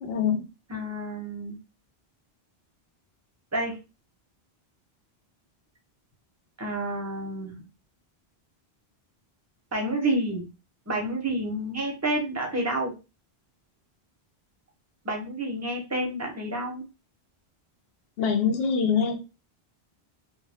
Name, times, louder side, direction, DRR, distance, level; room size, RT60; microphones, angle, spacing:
voice 1, 0.0-0.4 18.2-19.2, left 6 dB, 70° left, 5 dB, 0.8 m, -24 dB
voice 2, 0.7-1.6 3.5-3.8 6.6-7.5 9.7-10.5 10.9-12.9 15.0-16.9, right 1 dB, 20° right, 1 dB, 0.6 m, -29 dB
2.2 x 2.2 x 3.3 m, 0.29 s
omnidirectional pair, 1.1 m